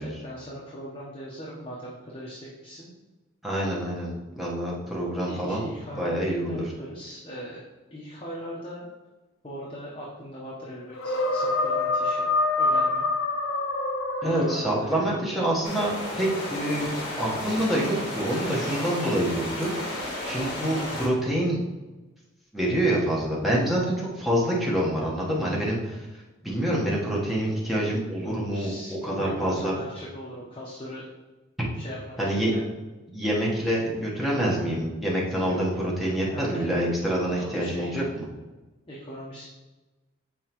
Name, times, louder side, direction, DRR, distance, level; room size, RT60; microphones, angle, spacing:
voice 1, 0.0-2.9 5.3-7.6 7.9-8.9 9.4-12.3 12.5-13.0 14.2-15.5 28.2-31.0 31.7-32.7 35.5-36.7 37.4-38.1 38.9-39.4, equal, 25° left, -5 dB, 0.9 m, -40 dB
voice 2, 3.4-5.7 6.0-6.7 14.2-21.6 22.5-26.1 26.4-29.8 31.6-31.7 32.2-32.5 33.1-38.2, right 1 dB, ahead, -6 dB, 1.1 m, -26 dB
sound 1, 10.9-15.0, left 2 dB, 90° left, 0.8 m, -26 dB
sound 2, 15.6-21.1, left 1 dB, 50° left, 2.0 m, -33 dB
7.1 x 4.6 x 3.0 m, 1.2 s
head